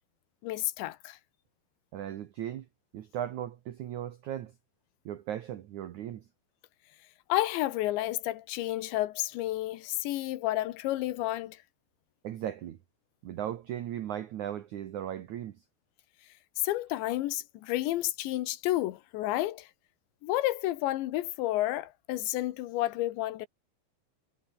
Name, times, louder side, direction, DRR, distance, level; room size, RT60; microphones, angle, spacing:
voice 1, 0.4-1.2 7.3-11.6 16.6-19.7 20.2-23.5, left 15 dB, 80° left, 3.3 m, -31 dB
voice 2, 1.9-2.7 2.9-4.5 5.0-6.2 12.2-12.8 13.2-15.6, right 11 dB, 90° right, 1.6 m, -37 dB
omnidirectional pair, 5.3 m